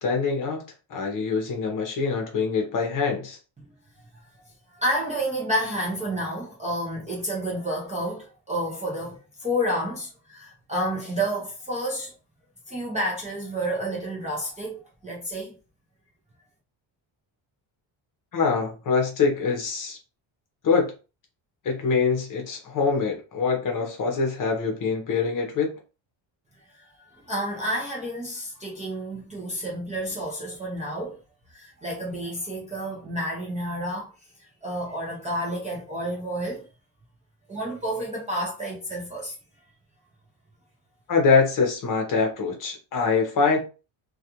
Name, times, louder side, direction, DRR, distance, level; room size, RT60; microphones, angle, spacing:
voice 1, 0.0-0.6 0.9-3.4 18.3-20.0 20.6-20.9 21.6-25.7 41.1-43.6, left 5 dB, 40° left, 0.7 m, -24 dB
voice 2, 4.7-12.1 12.7-15.5 26.8-31.2 31.5-34.1 34.6-36.7 37.5-39.3, equal, 15° right, 0.4 m, -30 dB
2.3 x 2.3 x 2.8 m
cardioid pair, 170°, 47 cm